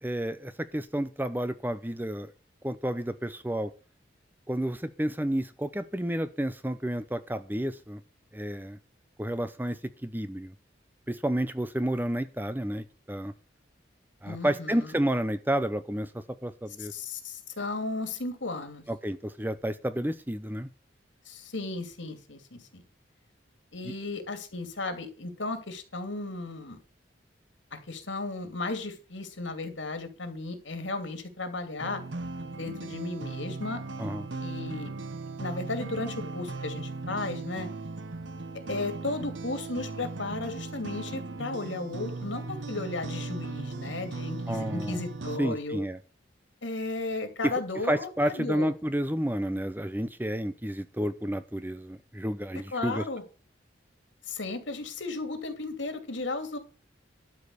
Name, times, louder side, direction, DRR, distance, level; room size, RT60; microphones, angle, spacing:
voice 1, 0.0-2.3 2.6-3.7 4.5-8.0 8.3-8.8 9.2-10.5 11.1-13.3 14.2-16.1 16.4-16.9 18.9-20.7 23.8-23.9 34.0-34.3 44.5-45.0 45.4-46.0 47.8-53.0, right 1 dB, 10° right, 12 dB, 0.6 m, -31 dB
voice 2, 14.2-14.9 16.8-18.8 21.3-22.8 23.7-26.8 27.7-32.0 32.6-33.8 34.4-34.9 35.4-37.7 38.7-45.8 46.6-48.7 52.7-53.2 54.3-56.6, left 3 dB, 80° left, 7 dB, 2.6 m, -35 dB
sound 1, 31.8-45.4, right 3 dB, 75° right, 1.0 m, -37 dB
12.0 x 5.2 x 8.4 m, 0.36 s
head